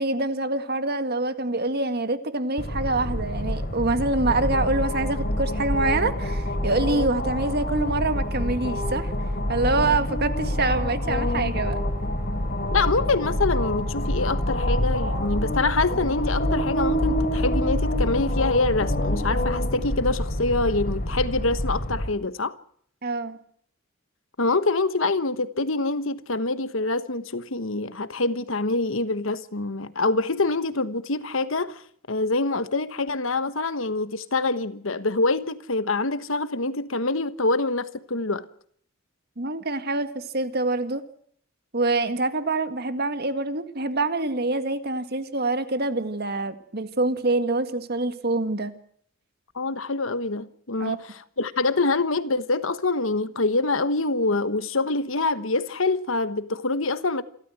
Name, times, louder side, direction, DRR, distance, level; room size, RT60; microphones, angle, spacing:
voice 1, 0.0-9.1 9.5-11.8 23.0-23.4 39.4-41.0 41.7-48.7 50.8-51.0, right 2 dB, 50° right, 1.9 m, -25 dB
sound 1, 2.6-22.1, left 1 dB, 45° left, 3.3 m, -26 dB
voice 2, 12.7-22.6 24.4-38.4 49.5-57.2, left 3 dB, 65° left, 1.3 m, -25 dB
27.5 x 13.5 x 7.8 m
head